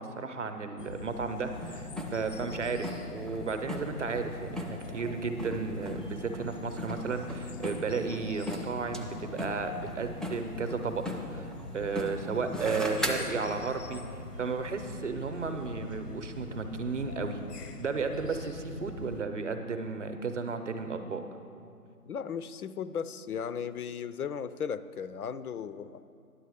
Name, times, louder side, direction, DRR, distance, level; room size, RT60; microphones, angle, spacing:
voice 1, 0.0-11.0 11.3-11.5 11.7-14.0 14.4-17.4 17.8-21.2, right 4 dB, 50° right, 8 dB, 0.7 m, -33 dB
sound 1, 0.8-19.2, left 3 dB, 85° left, 1.0 m, -44 dB
sound 2, 1.5-13.7 14.6-14.8, equal, ahead, 0.4 m, -39 dB
voice 2, 22.1-26.0, left 7 dB, 70° left, 13 dB, 0.5 m, -36 dB
10.0 x 7.5 x 4.9 m, 2.4 s
hypercardioid pair, 170°, 46 cm